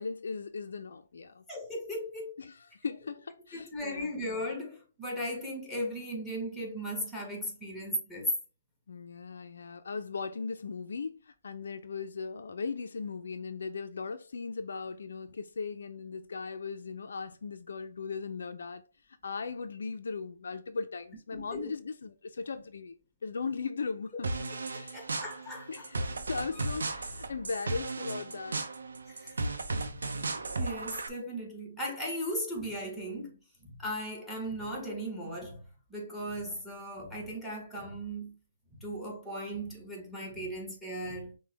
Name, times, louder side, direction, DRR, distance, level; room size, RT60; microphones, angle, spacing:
voice 1, 0.0-1.4 2.4-4.1 8.9-18.8 19.2-24.3 24.7-25.1 25.7-28.6, left 4 dB, 75° left, 0.5 m, -38 dB
voice 2, 1.5-2.3 3.5-8.3 21.3-21.7 24.9-25.9 26.5-26.6 29.2-29.3 29.8-30.0 30.5-35.6 35.9-38.4 38.7-41.3, equal, 5° left, 1.5 m, -37 dB
sound 1, 24.2-31.1, right 2 dB, 80° right, 0.6 m, -35 dB
5.9 x 2.2 x 3.3 m
hypercardioid pair, 140°, 0 cm